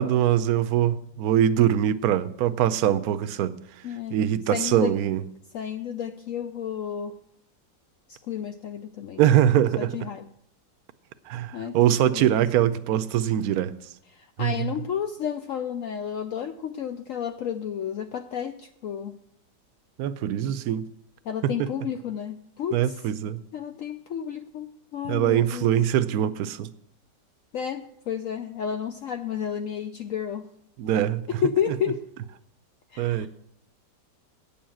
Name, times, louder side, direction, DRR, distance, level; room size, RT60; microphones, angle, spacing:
voice 1, 0.0-3.5 4.1-5.2 9.2-9.9 11.3-13.7 14.4-14.7 20.0-20.9 21.4-21.7 22.7-23.4 25.0-26.7 30.8-31.2 33.0-33.3, right 11 dB, 70° right, 1.0 m, -23 dB
voice 2, 3.8-4.2 4.5-4.9 5.5-7.2 8.1-9.2 9.8-10.3 11.5-12.4 14.1-19.1 21.3-23.0 23.5-25.7 27.5-30.5 31.3-32.0 32.9-33.3, left 8 dB, 70° left, 0.8 m, -31 dB
9.3 x 7.1 x 7.4 m
omnidirectional pair, 1.9 m